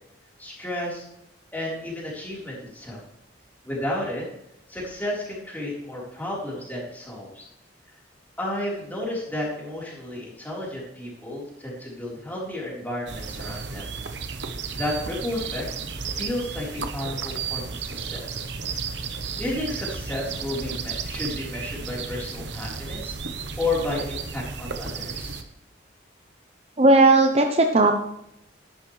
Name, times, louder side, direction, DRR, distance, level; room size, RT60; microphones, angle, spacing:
voice 1, 0.4-1.1 1.5-3.0 3.6-4.2 4.7-7.5 8.4-13.8 14.4-15.7 16.2-18.4 19.4-23.1 23.6-25.4, left 1 dB, 10° left, -4 dB, 4.0 m, -32 dB
sound 1, 13.1-25.4, right 5 dB, 65° right, 1.0 m, -33 dB
voice 2, 26.8-27.9, right 2 dB, 35° right, 4 dB, 0.8 m, -16 dB
13.0 x 11.5 x 3.3 m, 0.79 s
head